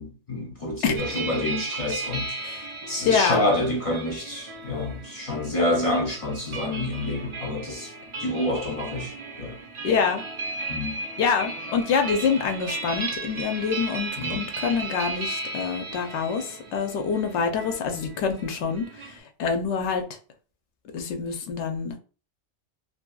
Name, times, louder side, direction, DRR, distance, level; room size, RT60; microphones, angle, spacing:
voice 1, 0.0-2.4 2.9-7.9 8.2-9.1 9.4-9.6 10.7-11.0 14.2-14.4, left 1 dB, 45° left, 0.5 m, -28 dB
sound 1, 1.0-19.2, right 3 dB, 50° right, 0.3 m, -36 dB
voice 2, 3.1-3.5 9.8-10.2 11.2-20.0 20.9-22.0, left 6 dB, 75° left, 0.9 m, -26 dB
2.7 x 2.6 x 2.2 m
omnidirectional pair, 1.2 m